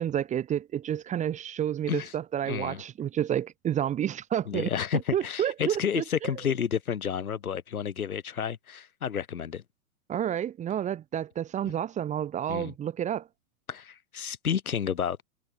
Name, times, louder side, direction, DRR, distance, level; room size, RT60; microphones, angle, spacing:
voice 1, 0.0-6.3 10.1-13.3, right 10 dB, 15° right, 1.5 m, -30 dB
voice 2, 2.5-2.8 4.5-9.6 12.5-12.7 13.7-15.2, left 8 dB, 75° left, 3.3 m, -31 dB
hypercardioid pair, 125°, 43 cm